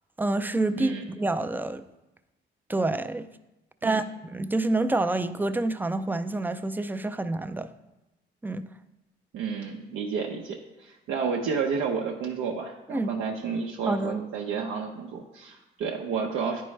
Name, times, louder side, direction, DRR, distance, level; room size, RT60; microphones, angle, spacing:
voice 1, 0.2-1.8 2.7-3.3 3.8-7.7 8.4-8.7 12.9-13.1 13.9-14.2, right 2 dB, 10° right, 0.3 m, -27 dB
voice 2, 9.3-16.6, right 5 dB, 85° right, 0.7 m, -31 dB
9.7 x 4.5 x 3.2 m
cardioid pair, 90°, 20 cm